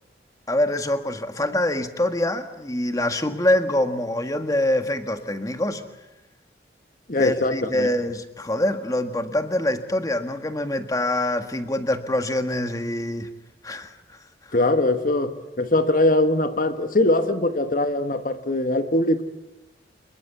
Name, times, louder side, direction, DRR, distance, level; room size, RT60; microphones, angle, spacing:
voice 1, 0.5-5.8 7.2-13.3 13.6-13.9, left 1 dB, 20° left, 1.6 m, -25 dB
voice 2, 7.1-7.9 14.5-19.2, left 2 dB, 45° left, 1.5 m, -21 dB
27.5 x 21.5 x 8.1 m
head